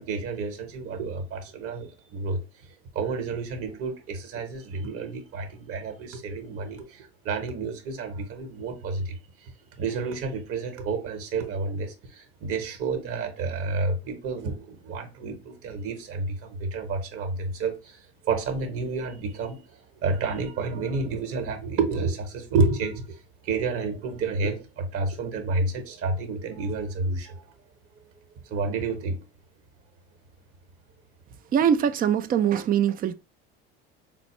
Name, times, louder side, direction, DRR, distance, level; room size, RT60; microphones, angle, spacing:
voice 1, 0.0-2.4 2.9-9.5 9.8-27.4 28.5-29.3, right 3 dB, 45° right, 1.0 m, -30 dB
voice 2, 31.5-33.1, right 8 dB, 30° right, 0.3 m, -22 dB
4.2 x 2.0 x 3.0 m
hypercardioid pair, 70°, 32 cm